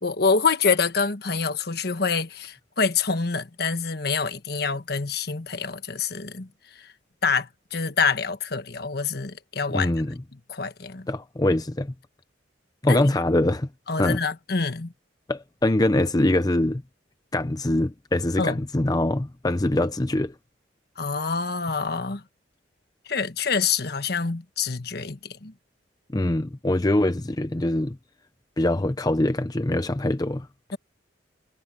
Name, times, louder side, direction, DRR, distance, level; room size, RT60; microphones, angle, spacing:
voice 1, 0.0-6.5 6.7-6.9 7.2-9.9 10.5-11.1 12.9-13.0 13.9-14.9 18.4-18.6 21.0-22.2 23.1-25.5, left 5 dB, 55° left, 1.4 m, -26 dB
voice 2, 9.7-10.1 11.1-11.9 12.8-13.7 14.0-14.2 15.3-16.8 17.3-20.3 26.1-28.0 28.6-30.5, left 1 dB, 20° left, 0.6 m, -23 dB
head